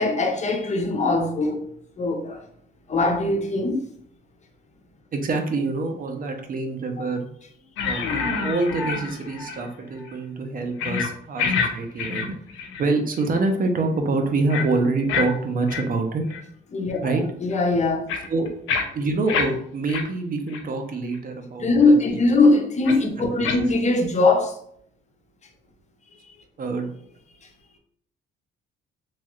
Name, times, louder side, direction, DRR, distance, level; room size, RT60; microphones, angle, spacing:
voice 1, 0.0-1.6 2.0-2.4 2.9-3.8 16.7-18.1 21.6-24.5, left 2 dB, 35° left, 0.6 m, -21 dB
voice 2, 5.1-7.3 7.8-12.4 12.8-16.2 17.0-17.2 18.3-18.5 18.9-22.2 23.2-23.6 26.6-26.9, right 3 dB, 45° right, 0.6 m, -26 dB
sound 1, 7.8-9.7 10.0-10.1 10.8-11.1 11.4-11.7 12.0-12.9 13.2-13.4 14.5-14.7 15.1-15.3 15.7-15.8 16.3-16.4 16.9-17.0 17.5-19.5 19.9-20.0 20.5-20.6 21.1-21.2 22.9-23.0 23.4-23.6, left 5 dB, 85° left, 0.5 m, -27 dB
3.0 x 2.3 x 3.0 m
cardioid pair, 90°, 20 cm